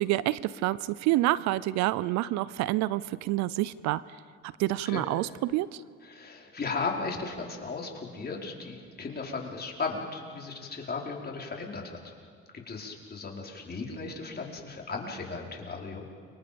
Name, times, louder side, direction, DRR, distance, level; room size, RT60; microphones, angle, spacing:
voice 1, 0.0-4.0 4.6-5.8, right 16 dB, 65° right, 19 dB, 0.7 m, -28 dB
voice 2, 6.0-12.0 12.7-16.0, left 4 dB, 30° left, -1 dB, 4.9 m, -36 dB
30.0 x 25.5 x 5.3 m, 2.1 s
hypercardioid pair, 65°, 30 cm